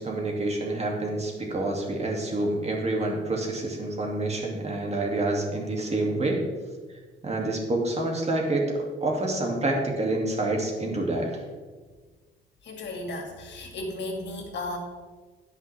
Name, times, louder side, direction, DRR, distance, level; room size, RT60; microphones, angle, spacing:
voice 1, 0.0-6.4 7.2-11.4, right 2 dB, 35° right, 0 dB, 2.4 m, -27 dB
voice 2, 12.6-14.8, left 2 dB, 60° left, 2 dB, 2.3 m, -34 dB
16.5 x 6.1 x 3.5 m, 1.4 s
cardioid pair, 90°, 20 cm